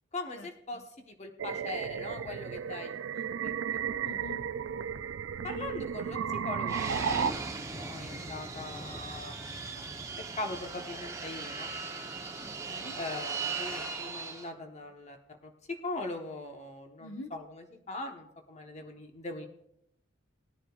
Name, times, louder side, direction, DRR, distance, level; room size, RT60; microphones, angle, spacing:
voice 1, 0.1-2.9 3.4-3.8 5.4-9.4 9.7-9.8 10.3-11.7 12.9-15.2 15.4-19.5, left 2 dB, 35° left, 4 dB, 1.2 m, -41 dB
sound 1, 1.4-7.3, right 7 dB, 65° right, 0.4 m, -34 dB
voice 2, 4.0-4.4 12.4-12.9 17.0-17.3, left 3 dB, 65° left, 5 dB, 1.0 m, -45 dB
Fixed-wing aircraft airplane, 6.7-14.5, right 4 dB, 15° right, 0.9 m, -38 dB
19.5 x 10.0 x 2.4 m, 0.77 s
head